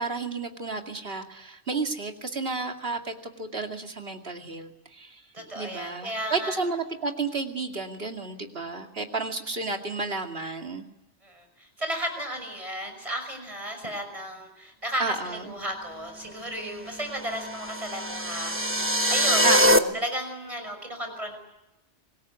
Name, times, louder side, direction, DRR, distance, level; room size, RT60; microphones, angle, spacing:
voice 1, 0.0-5.2 5.5-10.9 15.0-15.5 19.4-20.0, right 3 dB, 55° right, 4 dB, 2.6 m, -32 dB
voice 2, 5.3-6.6 11.2-21.4, equal, 30° right, 5 dB, 6.0 m, -34 dB
sound 1, 17.2-19.8, equal, 10° right, 1.0 m, -23 dB
25.5 x 21.0 x 9.5 m, 0.93 s
omnidirectional pair, 1.2 m